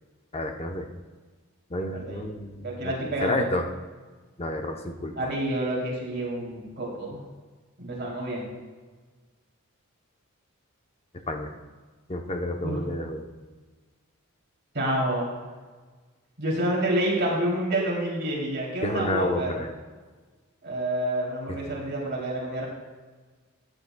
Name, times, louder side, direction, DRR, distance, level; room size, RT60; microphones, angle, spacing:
voice 1, 0.3-0.9 1.7-2.9 3.2-3.7 4.4-5.3 11.3-11.5 12.1-13.3 18.8-19.7 21.5-21.6, left 1 dB, 30° left, 5 dB, 0.7 m, -30 dB
voice 2, 2.6-3.5 5.2-7.2 7.8-8.5 12.6-12.8 14.7-15.4 16.4-19.6 20.6-22.7, right 1 dB, 50° right, -3 dB, 2.9 m, -28 dB
14.0 x 10.0 x 2.2 m, 1.4 s
head